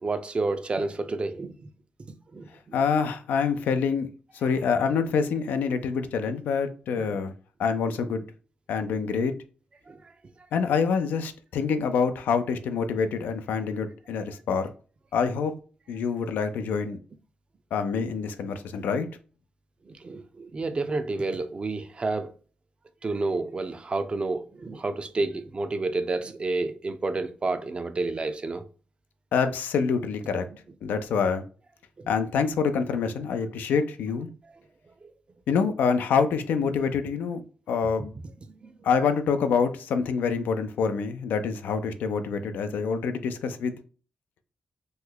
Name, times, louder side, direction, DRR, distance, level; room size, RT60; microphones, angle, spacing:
voice 1, 0.0-1.7 2.3-2.8 7.0-7.2 9.9-10.0 19.9-22.3 23.0-28.6 30.5-30.6 35.0-35.1 36.7-36.8 38.6-38.7, right 3 dB, 35° right, 0.5 m, -30 dB
voice 2, 2.7-4.1 4.3-7.3 7.6-8.2 8.7-9.3 10.5-14.7 15.1-15.5 15.9-17.0 17.7-19.1 29.3-30.5 30.8-31.4 32.1-34.3 35.5-37.4 37.7-38.1 38.8-43.8, left 6 dB, 85° left, 0.4 m, -26 dB
3.1 x 2.2 x 3.7 m
cardioid pair, 70°, 3 cm